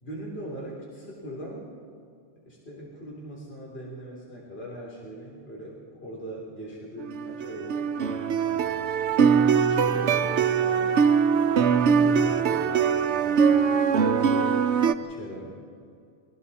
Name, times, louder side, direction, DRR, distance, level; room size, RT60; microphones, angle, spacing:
voice 1, 0.0-1.7 2.4-8.2 8.5-8.8 9.6-11.0 11.8-14.6 15.0-15.6, equal, 60° left, -4 dB, 3.7 m, -41 dB
sound 1, 7.0-14.9, right 6 dB, 75° right, 1.0 m, -22 dB
29.5 x 23.0 x 4.2 m, 2.3 s
omnidirectional pair, 1.2 m